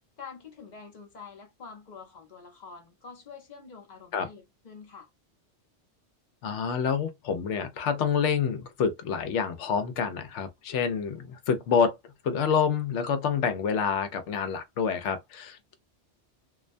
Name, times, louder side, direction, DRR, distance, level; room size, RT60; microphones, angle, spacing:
voice 1, 0.2-5.1, left 5 dB, 45° left, 0.8 m, -46 dB
voice 2, 6.4-12.0 12.2-15.7, left 6 dB, 80° left, 0.9 m, -27 dB
2.5 x 2.1 x 2.5 m
omnidirectional pair, 1.2 m